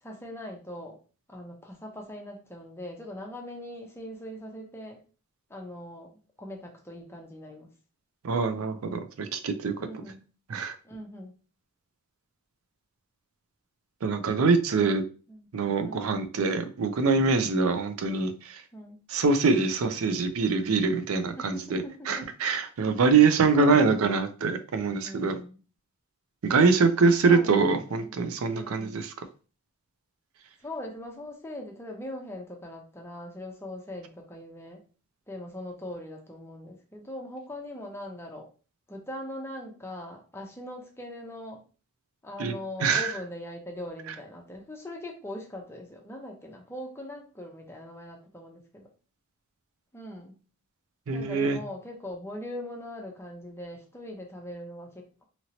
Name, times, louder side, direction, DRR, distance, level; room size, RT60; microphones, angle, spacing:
voice 1, 0.0-1.0 1.3-5.0 5.5-7.7 9.8-10.2 10.8-11.3 14.8-15.5 15.8-16.1 18.7-19.0 21.4-22.3 23.5-24.2 24.7-25.6 27.2-28.2 28.5-29.0 30.6-34.8 35.3-38.5 38.9-41.6 42.2-48.9 49.9-50.4 51.1-55.2, left 1 dB, 10° left, 1 dB, 0.6 m, -41 dB
voice 2, 8.2-9.7 10.5-10.8 14.0-15.0 15.5-18.6 19.1-25.3 26.4-29.1 42.4-42.5 42.8-43.1 51.1-51.6, right 4 dB, 70° right, 9 dB, 0.4 m, -24 dB
2.9 x 2.8 x 2.7 m, 0.36 s
head